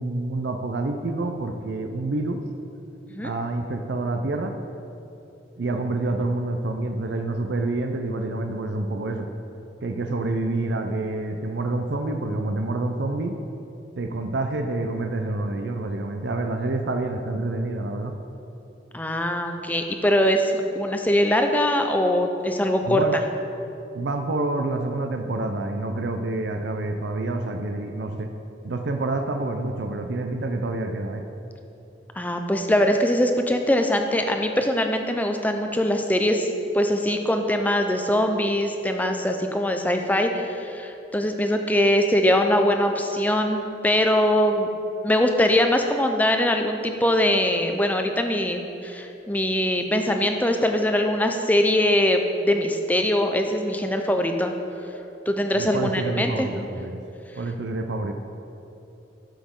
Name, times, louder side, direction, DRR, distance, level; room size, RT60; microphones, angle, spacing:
voice 1, 0.0-2.4 3.2-4.6 5.6-9.3 9.8-13.4 14.0-18.2 22.9-23.2 23.9-28.3 28.6-31.3 55.5-57.0 57.4-58.1, right 2 dB, 70° right, 5 dB, 0.5 m, -27 dB
voice 2, 18.9-23.0 32.2-36.5 36.7-44.7 45.0-54.5 55.3-56.5, left 1 dB, 10° left, 5 dB, 0.5 m, -22 dB
12.5 x 7.1 x 3.7 m, 2.9 s
head